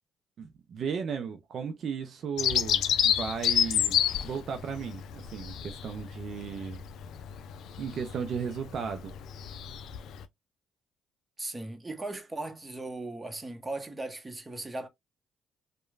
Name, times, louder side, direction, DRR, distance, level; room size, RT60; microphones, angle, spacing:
voice 1, 0.4-4.0 4.2-6.8 7.8-9.2, right 6 dB, 60° right, 0.4 m, -35 dB
Bird vocalization bird call bird song, 2.4-10.2, left 9 dB, 70° left, 0.3 m, -30 dB
voice 2, 11.4-14.9, right 2 dB, 20° right, 0.9 m, -38 dB
3.0 x 2.1 x 2.3 m
supercardioid pair, 60°, 0 cm